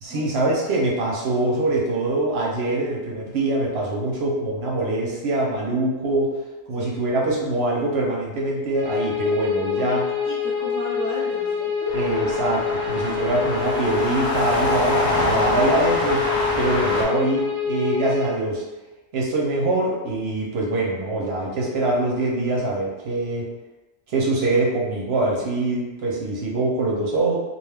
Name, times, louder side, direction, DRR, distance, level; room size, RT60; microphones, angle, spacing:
voice 1, 0.0-6.3 6.7-10.1 11.9-18.6 19.1-23.5 24.1-27.4, right 2 dB, 60° right, -3 dB, 0.8 m, -24 dB
sound 1, 8.7-18.3, left 6 dB, 25° left, 0.8 m, -26 dB
voice 2, 9.7-12.0 15.1-15.4, right 1 dB, 20° right, -9 dB, 0.6 m, -34 dB
sound 2, 11.9-17.0, left 1 dB, 65° left, 0.9 m, -25 dB
2.4 x 2.2 x 3.3 m, 1.1 s
omnidirectional pair, 1.3 m